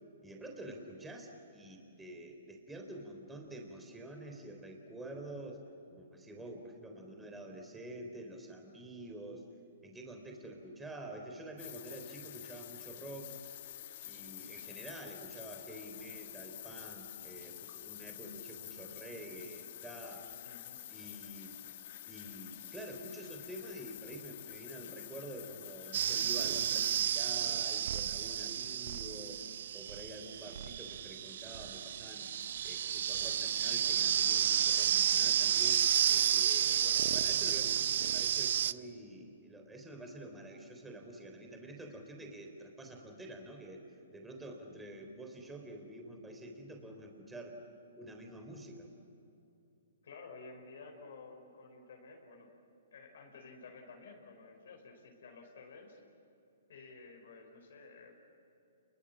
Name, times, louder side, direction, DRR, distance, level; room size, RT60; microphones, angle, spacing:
voice 1, 0.2-5.6 5.9-9.4 9.8-13.3 14.0-20.3 20.9-21.6 22.1-29.5 29.7-32.3 32.6-35.9 36.3-43.9 44.1-47.6 47.9-48.9, right 1 dB, 10° right, 3 dB, 3.7 m, -48 dB
sound 1, 11.6-27.0, left 13 dB, 50° left, 1.3 m, -48 dB
voice 2, 20.4-20.8 35.9-36.4 36.6-37.2 50.0-52.5 52.9-56.0 56.7-58.1, left 4 dB, 70° left, 1 dB, 5.1 m, -52 dB
sound 2, 25.9-38.7, right 10 dB, 60° right, 0.6 m, -31 dB
29.5 x 22.0 x 7.5 m, 2.9 s
hypercardioid pair, 130°, 0 cm